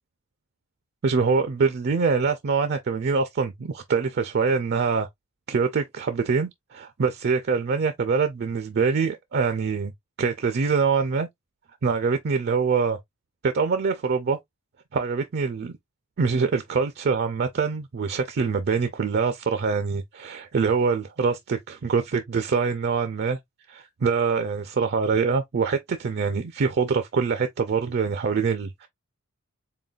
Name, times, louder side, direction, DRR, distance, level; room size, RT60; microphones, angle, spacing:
voice 1, 1.0-5.1 5.5-9.9 10.2-11.3 11.8-13.0 13.4-14.4 14.9-15.7 16.2-23.4 23.7-28.9, right 5 dB, 50° right, 0.4 m, -24 dB
3.9 x 3.8 x 2.3 m
head